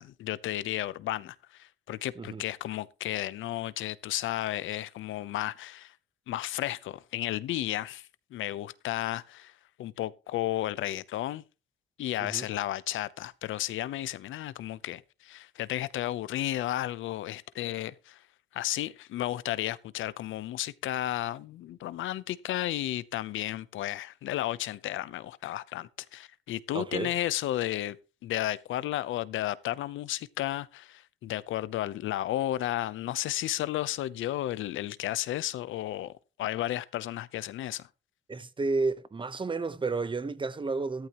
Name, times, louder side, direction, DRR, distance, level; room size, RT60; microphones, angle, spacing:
voice 1, 0.0-5.9 6.3-9.5 9.8-11.4 12.0-18.2 18.5-28.0 28.2-36.1 36.4-37.9, left 14 dB, 80° left, 0.8 m, -33 dB
voice 2, 26.7-27.1 38.3-41.1, right 3 dB, 25° right, 1.0 m, -31 dB
14.5 x 12.5 x 3.0 m
cardioid pair, 90°, 20 cm